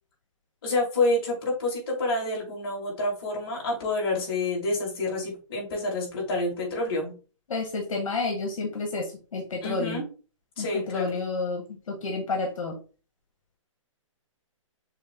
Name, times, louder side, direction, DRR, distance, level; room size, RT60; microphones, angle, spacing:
voice 1, 0.6-7.1 9.6-10.0 10.6-11.2, left 2 dB, 45° left, -2 dB, 2.3 m, -28 dB
voice 2, 7.5-10.0 10.6-12.8, left 3 dB, 80° left, 1 dB, 1.5 m, -30 dB
6.4 x 2.2 x 3.7 m, 0.37 s
hypercardioid pair, 165°, 17 cm